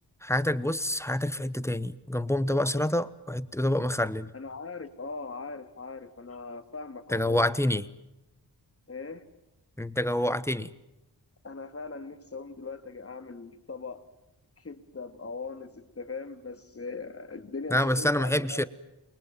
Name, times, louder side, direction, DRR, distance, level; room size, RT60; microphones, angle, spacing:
voice 1, 0.2-4.3 7.1-7.9 9.8-10.7 17.7-18.6, left 1 dB, 5° left, 15 dB, 1.2 m, -27 dB
voice 2, 4.3-7.5 8.9-9.2 11.4-14.0 14.6-18.6, left 4 dB, 35° left, 9 dB, 2.5 m, -40 dB
29.0 x 23.5 x 7.5 m, 0.94 s
wide cardioid pair, 120°, 39 cm